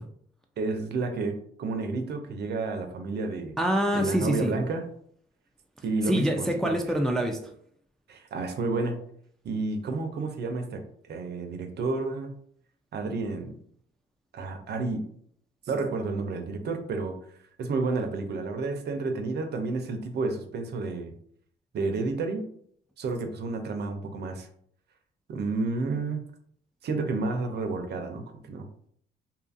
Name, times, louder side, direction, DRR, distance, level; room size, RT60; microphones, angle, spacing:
voice 1, 0.6-3.6 3.9-4.9 5.8-6.7 8.1-9.0 9.4-12.3 12.9-13.5 14.3-15.0 15.7-17.1 17.6-21.1 21.7-22.4 23.0-24.5 25.3-26.2 26.8-28.7, right 3 dB, 55° right, 6 dB, 0.5 m, -30 dB
voice 2, 3.6-4.6 6.0-7.4, equal, ahead, 3 dB, 0.3 m, -25 dB
2.7 x 2.4 x 2.5 m, 0.64 s
cardioid pair, 90°, 20 cm